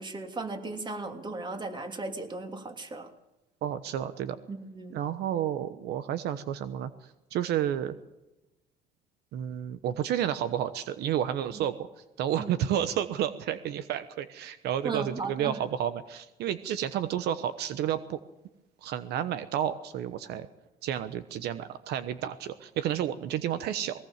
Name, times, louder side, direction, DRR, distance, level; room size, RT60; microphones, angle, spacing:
voice 1, 0.0-3.1 4.5-5.0 11.5-11.7 12.4-12.5 14.8-15.6, right 3 dB, 25° right, 5 dB, 3.0 m, -36 dB
voice 2, 3.6-4.4 4.9-8.0 9.3-11.9 12.2-18.2 18.8-20.5 20.8-24.0, right 10 dB, 80° right, 12 dB, 1.1 m, -31 dB
20.5 x 18.0 x 7.4 m, 0.98 s
cardioid pair, 110°, 17 cm